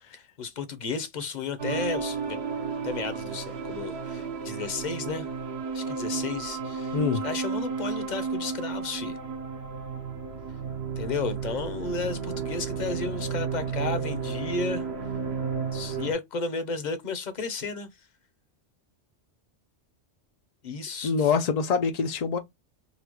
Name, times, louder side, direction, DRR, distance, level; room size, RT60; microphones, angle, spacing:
voice 1, 0.1-2.4 2.8-5.3 5.7-7.0 7.2-9.2 11.0-14.9 15.7-17.9 20.6-21.3, left 4 dB, 45° left, 0.8 m, -33 dB
sound 1, 1.6-16.1, right 5 dB, 65° right, 1.0 m, -32 dB
voice 2, 21.0-22.4, left 5 dB, 60° left, 0.4 m, -25 dB
4.2 x 2.2 x 2.9 m
omnidirectional pair, 1.2 m